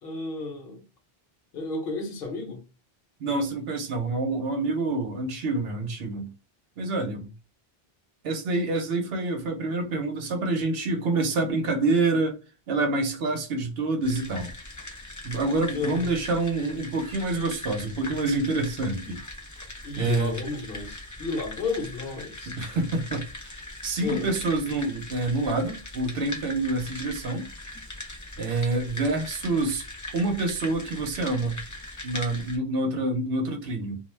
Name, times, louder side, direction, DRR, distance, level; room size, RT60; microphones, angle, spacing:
voice 1, 0.0-0.8 1.5-2.6 15.7-16.1 19.8-22.5 24.0-24.3, left 3 dB, 65° left, 0.9 m, -32 dB
voice 2, 3.2-6.3 6.8-7.3 8.2-12.4 12.7-14.5 15.2-19.2 19.9-20.4 22.6-23.5 23.8-27.5 28.4-29.8 30.1-31.6 32.0-34.0, right 2 dB, 80° right, 0.9 m, -27 dB
sound 1, 14.0-32.6, left 2 dB, 25° left, 0.4 m, -40 dB
2.3 x 2.0 x 3.2 m
omnidirectional pair, 1.0 m